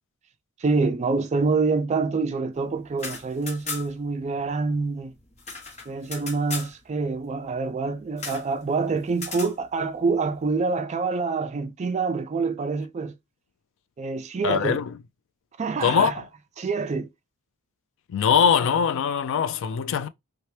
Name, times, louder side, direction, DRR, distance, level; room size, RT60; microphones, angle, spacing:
voice 1, 0.6-5.1 5.9-13.1 14.0-14.8 15.6-16.2 16.6-17.1, right 4 dB, 30° right, 0.3 m, -26 dB
sound 1, 2.9-4.1 4.4-4.5 4.7-6.7 8.2-8.5 9.1-9.5, left 4 dB, 30° left, 0.8 m, -36 dB
voice 2, 14.4-14.8 15.8-16.1 18.1-20.1, left 7 dB, 60° left, 0.3 m, -22 dB
2.8 x 2.2 x 3.1 m
head